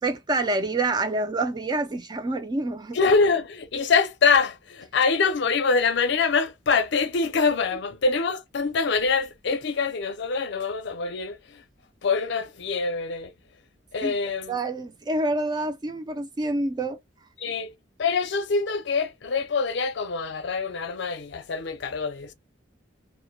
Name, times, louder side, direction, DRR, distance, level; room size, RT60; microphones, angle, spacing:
voice 1, 0.0-3.0 14.0-14.1 14.5-17.0, right 2 dB, 20° right, 0.3 m, -27 dB
voice 2, 2.9-11.6 12.0-13.3 13.9-14.6 17.4-17.7 18.0-22.3, left 4 dB, 65° left, 0.5 m, -24 dB
2.1 x 2.1 x 2.9 m
head